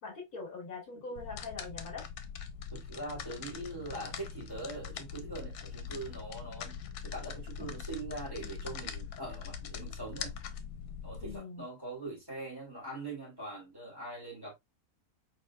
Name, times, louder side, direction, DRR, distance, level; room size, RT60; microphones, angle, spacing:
voice 1, 0.0-2.1 11.2-11.6, left 3 dB, 70° left, 2.3 m, -42 dB
sound 1, 1.2-11.4, left 7 dB, 90° left, 1.3 m, -42 dB
voice 2, 2.7-10.3 11.0-14.5, right 2 dB, 15° right, 3.1 m, -42 dB
4.7 x 4.3 x 2.3 m
omnidirectional pair, 1.7 m